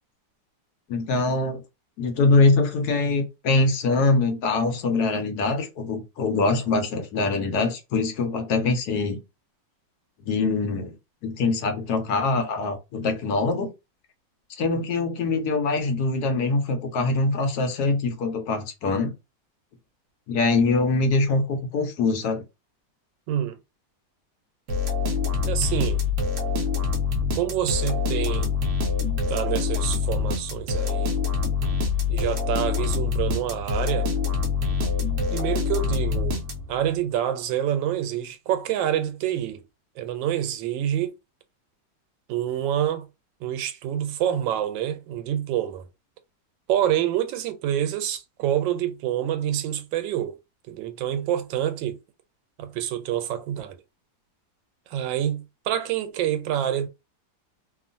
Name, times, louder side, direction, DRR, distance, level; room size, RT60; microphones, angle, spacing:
voice 1, 0.9-1.6 2.0-9.2 10.3-10.9 11.2-13.7 14.5-19.1 20.3-22.4, left 3 dB, 65° left, 1.1 m, -23 dB
voice 2, 23.3-23.6 25.4-26.0 27.4-28.5 29.3-31.2 32.1-34.1 35.3-36.4 36.7-39.6 40.0-41.1 42.3-43.1 43.4-45.9 46.7-50.4 50.7-52.0 52.6-53.8 54.9-56.9, right 11 dB, 90° right, 1.3 m, -27 dB
sound 1, 24.7-36.9, left 5 dB, 65° right, 0.8 m, -25 dB
2.9 x 2.4 x 2.5 m
omnidirectional pair, 2.0 m